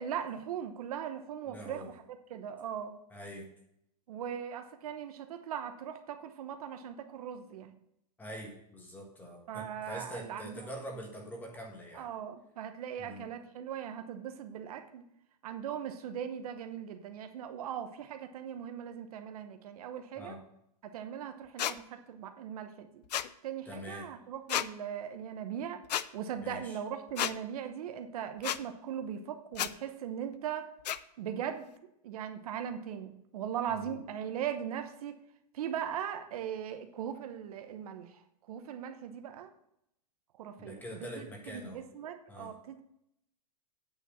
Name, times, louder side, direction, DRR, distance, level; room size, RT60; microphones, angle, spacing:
voice 1, 0.0-3.0 4.1-7.7 9.5-10.6 11.9-15.0 15.4-20.4 20.8-23.0 23.4-25.8 26.1-30.7 31.2-31.7 32.0-35.2 35.5-38.2 38.5-39.5 40.4-41.3 41.5-42.8, right 9 dB, 60° right, 8 dB, 1.0 m, -39 dB
voice 2, 1.5-1.9 3.1-3.5 8.2-12.1 13.0-13.2 20.1-20.4 23.6-24.1 26.4-26.8 33.8-34.0 40.6-41.8 42.3-42.5, equal, 10° left, 1 dB, 1.5 m, -44 dB
sound 1, 21.6-21.7 23.1-23.3 24.5-24.7 25.9-26.0 27.2-27.3 28.4-28.6 29.5-29.7 30.8-31.0, left 11 dB, 80° left, 0.5 m, -31 dB
8.9 x 4.6 x 6.9 m, 0.76 s
supercardioid pair, 155°, 21 cm